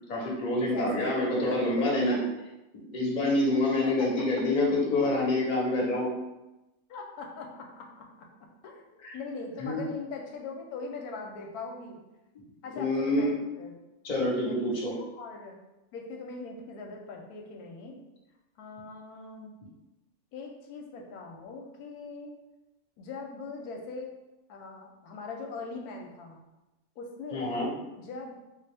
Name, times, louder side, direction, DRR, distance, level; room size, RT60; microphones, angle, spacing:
voice 1, 0.1-2.2 2.7-6.1 9.0-9.2 9.6-9.8 12.7-13.4 14.0-14.9 27.3-27.7, left 2 dB, 35° left, -4 dB, 0.9 m, -27 dB
voice 2, 0.7-2.3 3.8-4.4 6.9-8.1 8.6-8.9 9.1-12.0 12.6-13.8 14.4-15.6 15.9-18.0 18.6-19.5 20.3-22.4 23.0-24.1 24.5-26.4 27.0-27.6 28.0-28.3, left 4 dB, 85° left, 1 dB, 1.1 m, -40 dB
3.6 x 2.3 x 3.3 m, 0.98 s
omnidirectional pair, 1.6 m